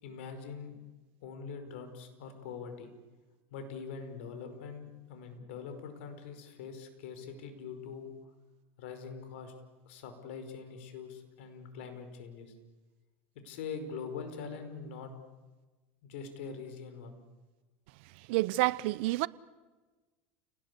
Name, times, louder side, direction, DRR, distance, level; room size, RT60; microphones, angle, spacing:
voice 1, 0.0-0.7 1.2-2.9 3.5-8.1 8.8-9.5 9.9-12.5 13.4-15.1 16.0-17.2, left 5 dB, 75° left, 5.3 m, -43 dB
voice 2, 18.3-19.3, right 20 dB, 70° right, 0.8 m, -28 dB
29.5 x 19.5 x 8.5 m
supercardioid pair, 115°, 6 cm